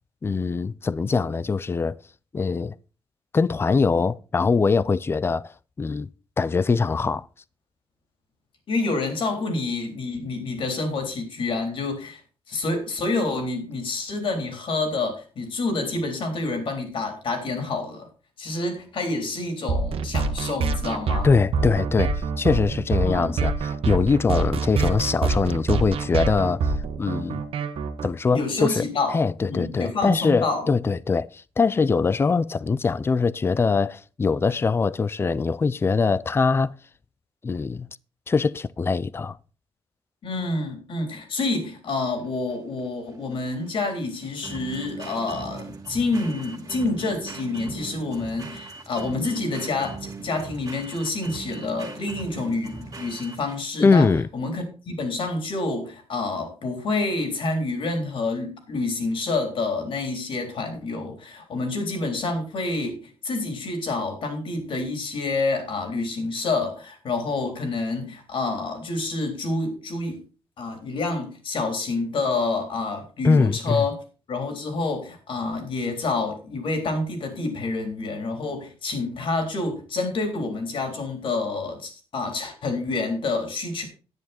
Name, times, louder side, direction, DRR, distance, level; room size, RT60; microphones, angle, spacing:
voice 1, 0.2-2.0 2.3-2.7 3.3-5.5 5.8-6.1 6.4-7.3 21.2-22.1 22.4-26.7 27.0-27.4 28.0-28.8 29.1-31.3 31.6-36.8 37.4-37.9 38.3-39.4 53.8-54.3 73.2-73.9, left 4 dB, 25° left, 0.4 m, -22 dB
voice 2, 8.7-12.2 12.5-18.1 18.4-21.3 23.0-23.4 28.3-29.2 29.5-30.7 40.2-70.2 70.6-74.0 74.3-83.8, left 3 dB, 60° left, 3.8 m, -28 dB
sound 1, 19.7-28.1, right 4 dB, 75° right, 1.4 m, -25 dB
sound 2, 42.2-53.8, right 3 dB, 40° right, 2.3 m, -39 dB
11.0 x 9.6 x 4.4 m
cardioid pair, 125°, 10 cm